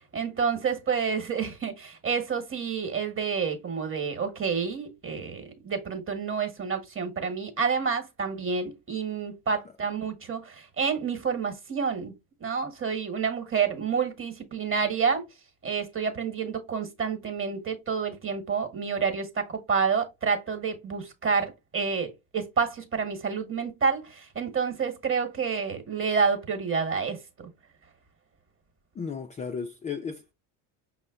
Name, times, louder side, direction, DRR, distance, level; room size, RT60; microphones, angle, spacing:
voice 1, 0.1-12.1 12.4-15.2 15.6-27.5, right 6 dB, 30° right, 1.4 m, -29 dB
voice 2, 29.0-30.3, left 6 dB, 20° left, 0.4 m, -34 dB
5.5 x 2.1 x 3.7 m
supercardioid pair, 85°, 45 cm